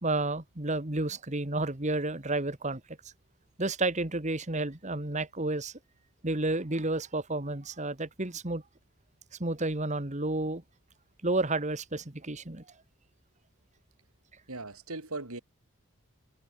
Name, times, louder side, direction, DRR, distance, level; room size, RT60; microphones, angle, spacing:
voice 1, 0.0-2.8 3.6-5.7 6.2-8.6 9.4-10.6 11.2-12.6, right 2 dB, 30° right, 1.6 m, -31 dB
voice 2, 14.5-15.4, right 2 dB, 80° right, 4.7 m, -38 dB
head